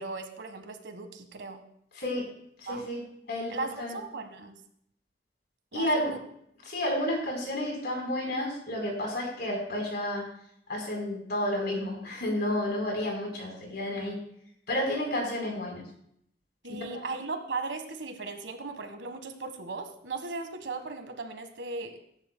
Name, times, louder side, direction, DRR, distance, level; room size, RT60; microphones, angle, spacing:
voice 1, 0.0-1.6 2.7-2.9 3.5-4.5 5.7-6.2 16.6-22.0, right 3 dB, 90° right, 7 dB, 1.4 m, -37 dB
voice 2, 2.0-2.3 2.6-3.0 3.3-4.0 5.7-6.2 6.6-10.2 10.7-14.2 14.7-15.8 16.7-17.1, left 1 dB, 65° left, 0 dB, 4.1 m, -31 dB
20.0 x 10.5 x 2.2 m, 0.70 s
head